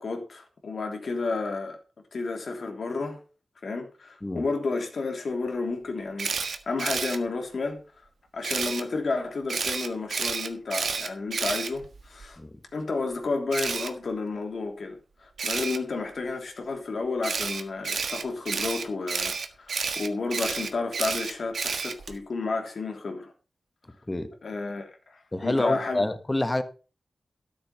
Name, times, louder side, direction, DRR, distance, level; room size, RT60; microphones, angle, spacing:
voice 1, 0.0-1.8 2.1-3.2 3.6-7.8 8.3-12.4 12.7-23.3 24.4-26.0, left 3 dB, 70° left, 3.1 m, -31 dB
Camera, 6.2-7.2 8.4-8.8 9.5-12.3 13.5-13.9 15.4-15.8 17.2-22.2, right 5 dB, 90° right, 1.4 m, -30 dB
voice 2, 25.3-26.6, left 1 dB, 20° left, 1.4 m, -27 dB
13.0 x 7.2 x 5.7 m
wide cardioid pair, 90°, 0 cm